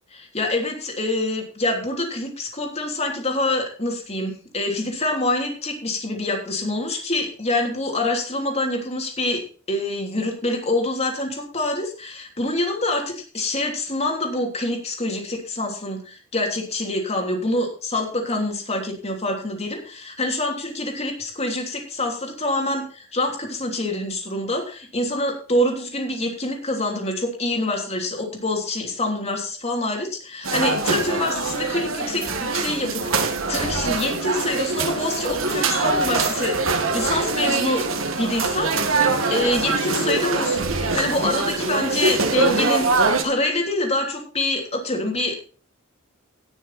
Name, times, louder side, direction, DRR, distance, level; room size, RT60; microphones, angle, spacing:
voice 1, 0.1-9.4 9.7-13.0 13.3-37.8 38.2-39.0 39.3-45.3, left 2 dB, 30° left, 2 dB, 3.2 m, -26 dB
sound 1, 30.4-43.2, right 3 dB, 75° right, 1.8 m, -23 dB
18.0 x 7.0 x 4.3 m, 0.39 s
head